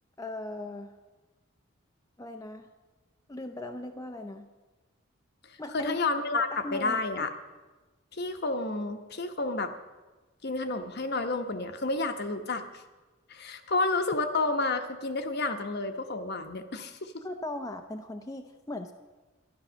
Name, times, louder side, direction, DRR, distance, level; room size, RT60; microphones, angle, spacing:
voice 1, 0.2-0.9 2.2-2.7 3.3-4.5 5.6-6.0 6.3-7.3 17.2-18.9, left 2 dB, 15° left, 4 dB, 0.6 m, -38 dB
voice 2, 5.7-7.3 8.1-9.7 10.4-12.6 13.3-17.1, left 3 dB, 55° left, 7 dB, 1.1 m, -30 dB
13.0 x 11.0 x 6.3 m, 1.2 s
head